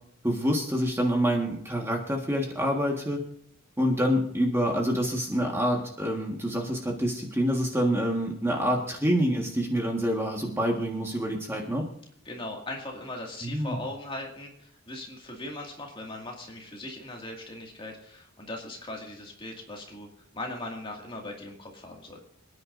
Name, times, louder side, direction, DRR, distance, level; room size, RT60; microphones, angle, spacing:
voice 1, 0.2-3.2 3.8-11.9 13.4-13.8, equal, 10° right, 0 dB, 1.5 m, -27 dB
voice 2, 12.3-22.2, left 1 dB, 25° left, 0 dB, 2.2 m, -39 dB
27.0 x 9.8 x 2.6 m, 0.70 s
head